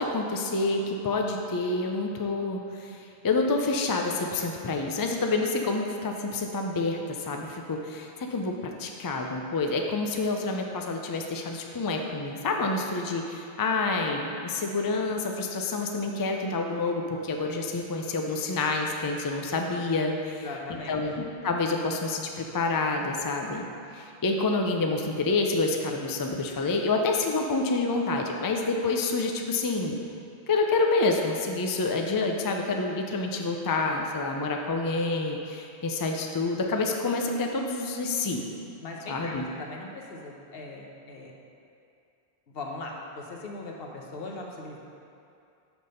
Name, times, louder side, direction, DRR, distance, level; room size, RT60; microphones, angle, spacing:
voice 1, 0.0-20.1 20.9-23.7 23.9-30.0 30.5-38.4 39.1-39.4, left 3 dB, 35° left, 2 dB, 0.3 m, -28 dB
voice 2, 20.2-21.0 38.8-41.3 42.5-44.8, left 2 dB, 65° left, 0 dB, 1.0 m, -39 dB
6.0 x 5.1 x 5.5 m, 2.5 s
omnidirectional pair, 1.1 m